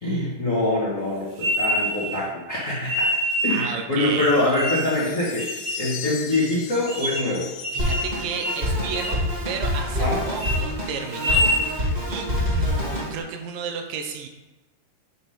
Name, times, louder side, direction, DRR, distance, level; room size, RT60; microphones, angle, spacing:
voice 1, 0.0-3.1 3.4-5.5 5.8-7.5 10.0-10.2, left 2 dB, 50° left, -8 dB, 0.9 m, -24 dB
sound 1, 1.4-2.2 2.9-3.7 4.2-4.9 5.4-5.9 6.3-6.4 6.9-7.3 7.6-8.1 8.4-8.6 8.9-9.2 9.6-10.1 10.3-10.6 11.1-11.7, equal, 60° right, 2.5 m, -26 dB
voice 2, 3.5-4.3 7.7-14.3, right 6 dB, 85° right, 4 dB, 2.3 m, -33 dB
sound 2, 4.2-8.9, left 9 dB, 75° left, 1.9 m, -39 dB
Drum kit, 7.8-13.2, left 1 dB, 30° right, 0.7 m, -26 dB
9.1 x 3.4 x 5.7 m, 1.1 s
omnidirectional pair, 4.1 m